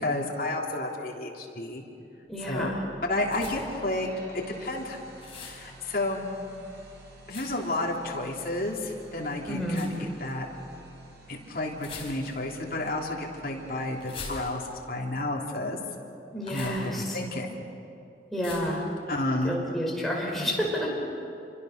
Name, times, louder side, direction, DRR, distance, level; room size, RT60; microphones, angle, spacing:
voice 1, 0.0-1.8 2.5-2.7 3.1-5.0 5.5-6.2 7.3-10.5 11.3-15.8 16.5-17.5 19.1-19.6, left 2 dB, 50° left, -2 dB, 3.2 m, -31 dB
voice 2, 2.3-2.8 9.5-9.9 16.3-17.2 18.3-18.8 19.4-21.2, equal, ahead, -3 dB, 5.2 m, -30 dB
sound 1, 2.3-15.3, right 1 dB, 80° right, 5.6 m, -50 dB
sound 2, 3.3-3.8 5.2-5.6 7.3-7.7 9.7-10.0 11.8-12.5 14.0-14.8 16.4-16.9 18.4-18.8, left 4 dB, 30° left, 4.8 m, -42 dB
27.5 x 24.5 x 6.7 m, 2.7 s
head